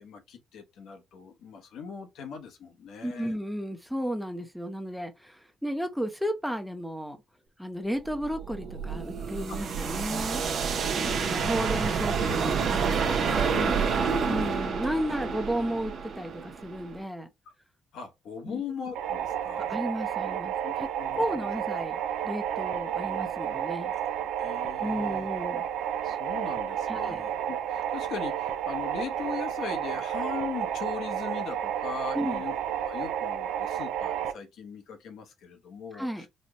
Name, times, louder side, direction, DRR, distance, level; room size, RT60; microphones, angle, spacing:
voice 1, 0.0-3.4 9.5-9.6 10.9-11.4 13.5-14.5 17.9-19.7 20.6-21.5 24.4-25.3 26.0-36.3, left 6 dB, 75° left, 0.9 m, -40 dB
voice 2, 3.0-7.2 7.6-10.4 11.1-13.5 14.3-17.3 18.4-18.6 19.7-20.9 21.2-22.0 22.2-23.9 24.8-25.7 26.9-27.2 32.1-32.4 35.9-36.3, equal, ahead, 0.7 m, -33 dB
sound 1, 8.1-17.0, right 6 dB, 60° right, 0.7 m, -29 dB
sound 2, 19.0-34.3, right 10 dB, 90° right, 0.4 m, -31 dB
4.2 x 2.1 x 2.9 m
cardioid pair, 90°, 0 cm